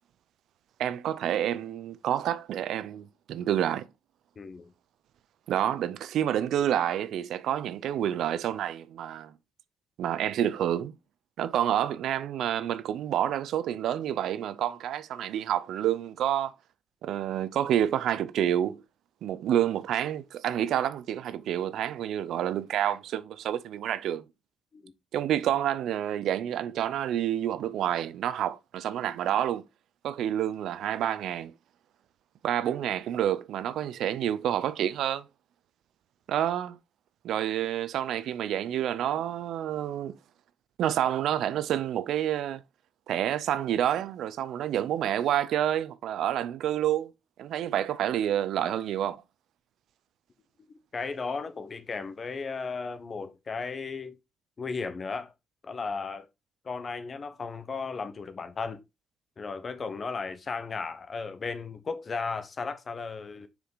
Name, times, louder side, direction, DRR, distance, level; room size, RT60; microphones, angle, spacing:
voice 1, 0.8-3.9 5.5-9.3 10.0-10.9 11.4-16.5 17.0-18.8 19.2-24.2 25.1-29.6 30.0-31.5 32.4-35.2 36.3-36.8 37.2-40.2 40.8-42.6 43.1-47.1 47.4-49.2, right 11 dB, 75° right, 0.6 m, -28 dB
voice 2, 4.4-4.7 24.7-24.9 50.9-54.2 54.6-55.3 55.6-56.3 56.6-58.8 59.4-63.5, left 4 dB, 40° left, 1.1 m, -35 dB
6.6 x 4.8 x 3.9 m
cardioid pair, 90°, 0 cm